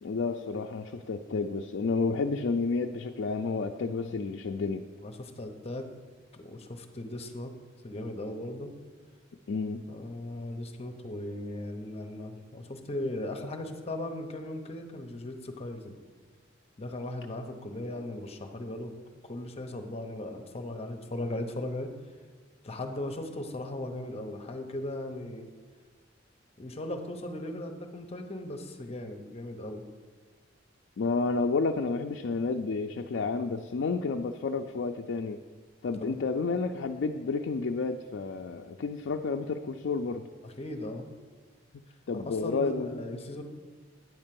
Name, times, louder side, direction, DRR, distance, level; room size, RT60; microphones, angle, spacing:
voice 1, 0.0-4.9 9.5-9.8 31.0-35.4 35.8-40.2 42.1-43.2, left 4 dB, 65° left, 4 dB, 0.4 m, -30 dB
voice 2, 3.9-4.2 5.0-5.9 6.3-7.5 7.8-8.7 9.9-16.0 16.8-18.9 19.2-21.9 22.6-25.5 26.6-29.8 36.0-36.2 40.4-41.1 42.1-43.4, left 1 dB, 30° left, 5 dB, 0.8 m, -38 dB
9.4 x 4.4 x 7.6 m, 1.5 s
head